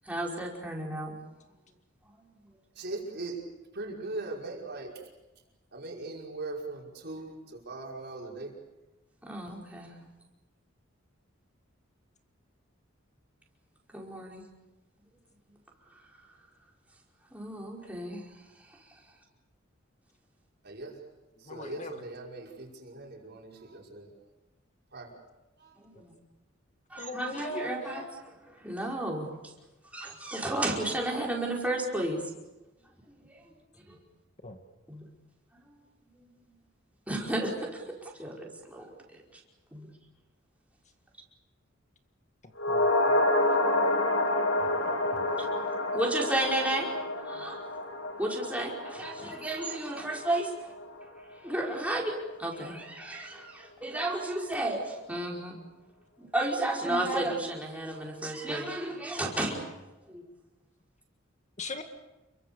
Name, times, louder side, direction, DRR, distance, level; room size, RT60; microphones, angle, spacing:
voice 1, 0.1-1.1 9.2-9.9 13.9-14.4 17.3-18.2 25.8-26.1 26.9-28.0 28.6-29.3 29.9-32.2 33.3-33.4 33.9-34.0 34.9-35.0 36.2-36.3 37.1-37.8 38.2-38.9 39.7-39.9 45.4-45.5 45.9-46.9 47.3-47.6 48.2-50.5 51.4-52.1 52.4-55.5 56.2-59.7 60.1-60.2, right 1 dB, 5° right, -2 dB, 5.1 m, -32 dB
voice 2, 2.8-3.4 3.7-4.9 5.7-8.5 20.6-21.0 21.4-24.2 24.9-25.2 25.6-25.8, right 2 dB, 55° right, -1 dB, 5.5 m, -40 dB
voice 3, 21.4-22.0 25.9-26.0 27.0-28.2 34.4-34.6 42.7-43.2 45.1-45.3 61.6-61.8, left 2 dB, 35° left, 6 dB, 1.9 m, -40 dB
sound 1, 42.6-51.0 51.3-51.4, left 1 dB, 70° left, 3.1 m, -29 dB
29.5 x 23.5 x 7.0 m, 1.1 s
head